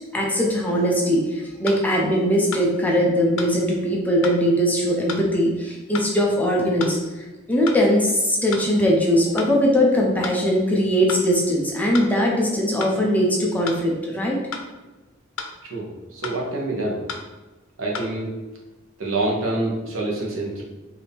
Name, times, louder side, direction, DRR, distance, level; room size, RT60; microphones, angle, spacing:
voice 1, 0.1-7.0 7.5-14.4, equal, 10° left, -2 dB, 0.7 m, -20 dB
sound 1, 1.7-1.8 2.5-2.7 3.4-3.5 4.2-4.4 5.1-5.3 5.9-6.1 6.8-7.0 7.7-7.8 8.5-8.7 9.4-9.5 10.2-10.4 11.1-11.2 11.9-12.1 12.8-13.0 13.7-13.8 14.5-14.7 15.4-15.5 16.2-16.4 17.1-17.3 17.9-18.1, left 5 dB, 85° left, 0.6 m, -32 dB
voice 2, 15.7-17.0 17.8-18.3 19.0-20.6, right 2 dB, 90° right, -2 dB, 1.1 m, -26 dB
4.5 x 2.9 x 3.5 m, 1.1 s
head